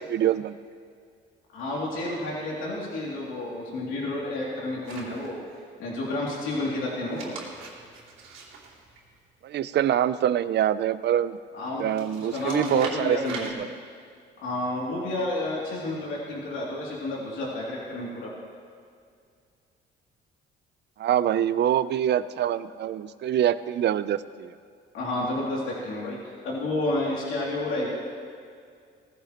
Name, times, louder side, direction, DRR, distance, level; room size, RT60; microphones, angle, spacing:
voice 1, 0.1-0.6 9.4-11.4 11.8-13.7 21.0-24.5, right 10 dB, 60° right, 15 dB, 0.5 m, -25 dB
voice 2, 1.5-5.4 5.8-7.3 11.5-11.9 12.2-13.5 14.4-18.3 24.9-26.2 26.4-27.9, left 2 dB, 90° left, -4 dB, 2.8 m, -30 dB
sound 1, 4.8-5.6 6.9-9.5 11.9-13.5, right 4 dB, 85° right, 2.6 m, -41 dB
18.0 x 14.5 x 3.0 m, 2.2 s
cardioid pair, 90°, 20 cm